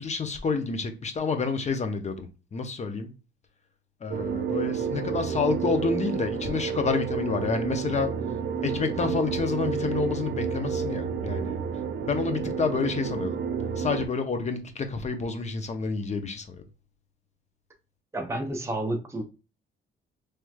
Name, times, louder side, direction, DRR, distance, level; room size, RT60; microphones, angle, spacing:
voice 1, 0.0-3.1 4.0-8.1 8.6-11.6 12.1-13.4 13.8-16.6, left 5 dB, 35° left, 0.7 m, -29 dB
sound 1, 4.1-14.1, right 6 dB, 65° right, 0.6 m, -30 dB
voice 2, 18.1-19.2, right 1 dB, 15° right, 0.7 m, -30 dB
3.2 x 3.1 x 2.3 m
cardioid pair, 90°, 20 cm